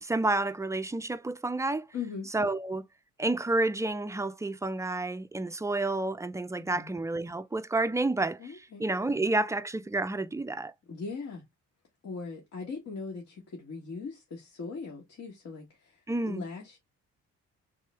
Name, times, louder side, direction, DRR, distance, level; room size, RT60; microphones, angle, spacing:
voice 1, 0.0-1.9 2.3-2.9 3.2-10.7 16.1-16.5, right 2 dB, 10° right, 0.3 m, -30 dB
voice 2, 1.9-2.3 6.6-6.9 8.4-8.8 10.9-11.4 12.0-16.8, left 5 dB, 55° left, 1.4 m, -40 dB
3.7 x 3.2 x 3.2 m
cardioid pair, 90°, 30 cm